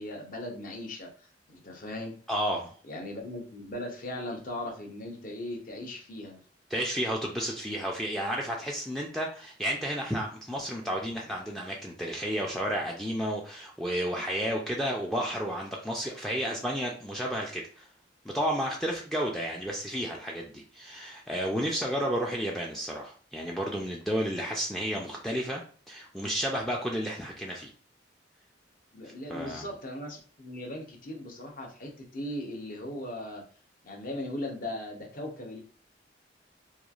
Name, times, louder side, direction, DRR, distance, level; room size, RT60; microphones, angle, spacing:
voice 1, 0.0-2.1 2.8-6.4 28.9-33.4 33.8-35.6, left 1 dB, 50° left, 0 dB, 0.7 m, -38 dB
voice 2, 2.3-2.7 6.7-17.9 18.3-25.6 25.9-27.7 29.3-29.7, equal, ahead, -2 dB, 0.3 m, -32 dB
3.0 x 2.3 x 2.4 m, 0.43 s
head